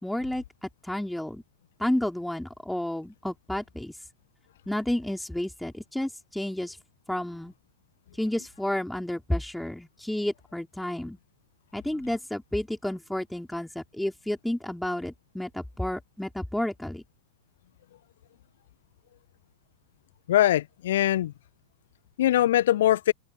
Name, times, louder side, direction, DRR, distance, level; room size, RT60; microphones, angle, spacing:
voice 1, 0.0-1.4 1.8-3.9 4.7-6.8 7.1-7.5 8.2-11.2 11.7-17.0, left 1 dB, 5° left, 5.1 m, -31 dB
voice 2, 20.3-21.3 22.2-23.1, left 13 dB, 60° left, 1.5 m, -22 dB
open air
figure-of-eight pair, 90°, 0 cm